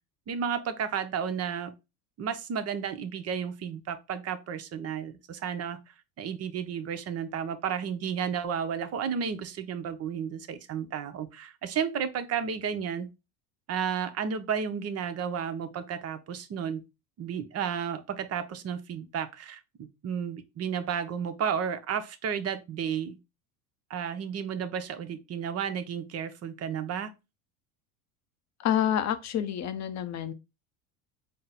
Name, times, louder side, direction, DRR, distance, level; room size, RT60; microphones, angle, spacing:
voice 1, 0.3-1.7 2.2-13.1 13.7-16.8 17.2-23.2 23.9-27.1, right 7 dB, 30° right, 0.6 m, -32 dB
voice 2, 28.6-30.3, left 10 dB, 35° left, 0.6 m, -28 dB
4.1 x 2.0 x 3.9 m
supercardioid pair, 100°, 48 cm